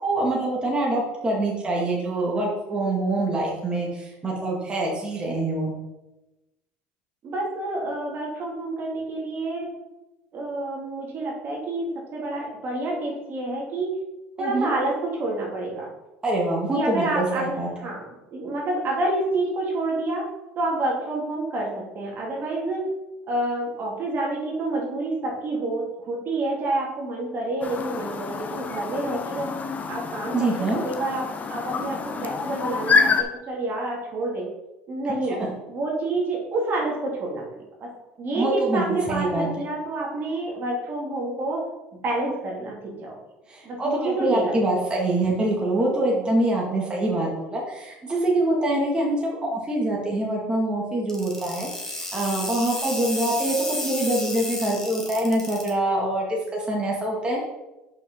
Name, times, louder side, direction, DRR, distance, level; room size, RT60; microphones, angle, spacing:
voice 1, 0.0-5.7 14.4-14.7 16.2-17.9 30.3-30.8 35.3-35.5 38.3-39.5 43.5-57.4, right 1 dB, 20° right, -3 dB, 2.1 m, -25 dB
voice 2, 7.2-9.7 10.3-13.9 14.4-15.9 16.7-17.4 17.8-18.0 18.3-20.2 20.6-22.8 23.3-29.5 29.9-31.2 31.5-34.5 34.9-35.4 35.7-37.4 37.8-37.9 38.2-41.6 42.0-43.1 43.6-44.5, right 2 dB, 45° right, -2 dB, 2.4 m, -28 dB
Chirp tweet, 27.6-33.2, left 5 dB, 35° left, 0.9 m, -27 dB
sound 1, 51.1-55.7, left 1 dB, 10° left, 2.2 m, -32 dB
5.7 x 5.3 x 5.4 m, 1.0 s
supercardioid pair, 85°, 5 cm